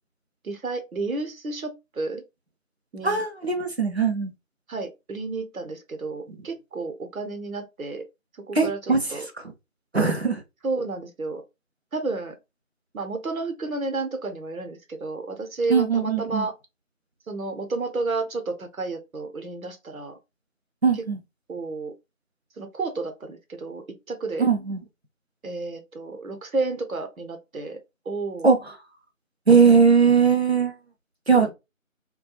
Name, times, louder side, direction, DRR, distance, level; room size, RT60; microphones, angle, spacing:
voice 1, 0.4-2.2 2.9-3.2 4.7-8.0 8.5-8.8 9.1-9.3 10.6-11.4 11.9-12.4 12.9-16.5 17.3-20.2 21.5-21.9 22.6-24.5 25.4-27.8 28.1-28.5 31.3-31.5, right 3 dB, 85° right, 0.8 m, -31 dB
voice 2, 3.0-4.3 6.3-6.5 8.5-9.5 9.9-10.4 15.7-16.5 20.8-21.2 24.4-24.8 28.4-28.8 29.5-30.7 31.3-31.5, right 5 dB, 50° right, 0.5 m, -20 dB
2.3 x 2.2 x 2.8 m
figure-of-eight pair, 175°, 41 cm